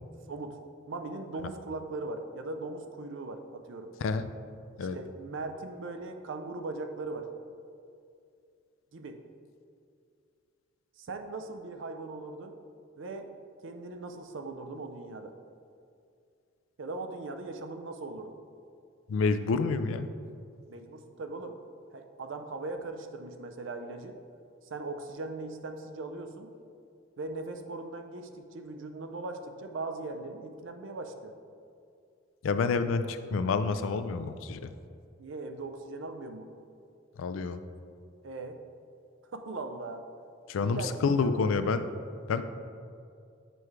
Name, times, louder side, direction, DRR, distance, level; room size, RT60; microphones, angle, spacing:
voice 1, 0.3-0.6 0.9-3.9 4.9-7.3 8.9-9.2 11.0-12.6 13.0-13.3 13.6-15.3 16.8-18.3 20.7-21.6 21.9-24.2 24.6-26.5 27.2-31.3 35.2-36.5 38.2-38.6 39.3-40.1 40.5-41.5, right 3 dB, 70° right, 6 dB, 0.5 m, -39 dB
voice 2, 19.1-20.1 32.4-34.7 37.2-37.6 40.5-41.9 42.3-42.4, left 4 dB, 85° left, 10 dB, 0.4 m, -28 dB
7.7 x 4.6 x 3.2 m, 2.3 s
head